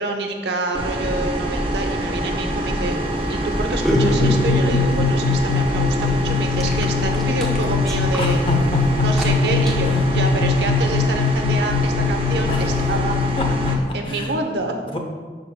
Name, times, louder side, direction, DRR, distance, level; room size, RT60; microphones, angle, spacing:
voice 1, 0.0-3.0 3.3-8.4 9.0-13.2 13.9-14.7, right 2 dB, 70° right, 3 dB, 0.8 m, -27 dB
sound 1, 0.7-13.7, right 1 dB, 30° right, 0.7 m, -25 dB
sound 2, 2.9-10.0, equal, ahead, 0.8 m, -28 dB
sound 3, 3.9-13.8, left 5 dB, 55° left, 0.4 m, -22 dB
voice 2, 8.2-9.1 9.8-10.1 12.5-12.9 13.4-14.4 14.9-15.0, equal, 30° left, 2 dB, 0.7 m, -28 dB
11.0 x 5.8 x 2.2 m, 1.5 s
head